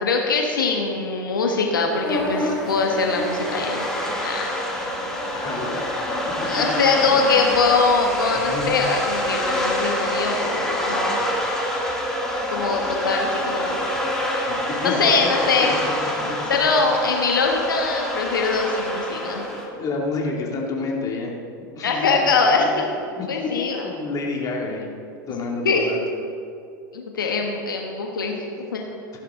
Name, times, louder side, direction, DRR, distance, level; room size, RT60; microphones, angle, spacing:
voice 1, 0.0-3.9 4.2-4.5 6.4-11.2 12.5-13.8 14.5-14.6 14.8-15.7 16.0-16.1 16.5-19.4 21.8-22.9 23.3-23.9 25.6-25.9 26.9-28.4 28.7-28.8, left 4 dB, 90° left, 1 dB, 1.2 m, -22 dB
sound 1, 1.7-19.7, left 1 dB, 5° left, 2.9 m, -26 dB
voice 2, 5.3-5.8 6.4-6.8 8.5-8.7 11.2-11.3 14.5-15.3 15.6-15.8 19.3-21.3 21.7-22.2 22.6-22.7 23.1-24.9 25.3-26.0 27.2-27.3, left 3 dB, 35° left, -1 dB, 2.4 m, -29 dB
14.5 x 11.0 x 3.7 m, 2.5 s
hypercardioid pair, 90°, 11 cm